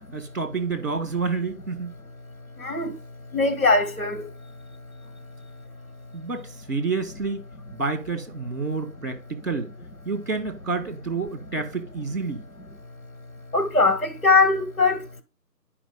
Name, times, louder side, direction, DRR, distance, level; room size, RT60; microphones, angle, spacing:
voice 1, 0.1-1.9 6.1-7.4 7.7-9.7 10.1-12.4, right 4 dB, 50° right, 1.8 m, -29 dB
voice 2, 2.6-2.9 3.3-4.3 13.5-15.2, left 3 dB, 55° left, 1.7 m, -21 dB
11.0 x 5.2 x 3.8 m
figure-of-eight pair, 170°, 50 cm